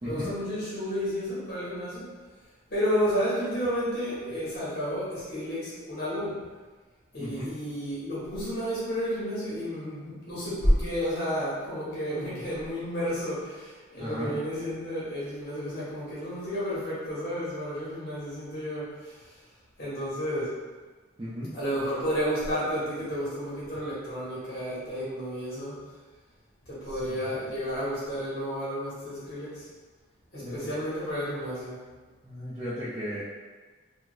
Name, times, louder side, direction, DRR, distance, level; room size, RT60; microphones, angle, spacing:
voice 1, 0.0-2.1 2.7-6.4 7.1-19.3 19.8-20.6 21.5-25.8 26.7-29.7 30.3-31.9, equal, 50° left, -9 dB, 1.1 m, -31 dB
voice 2, 7.2-7.5 14.0-14.3 21.2-21.5 30.4-30.6 32.2-33.2, equal, 20° right, -11 dB, 0.5 m, -35 dB
2.8 x 2.4 x 3.0 m, 1.3 s
head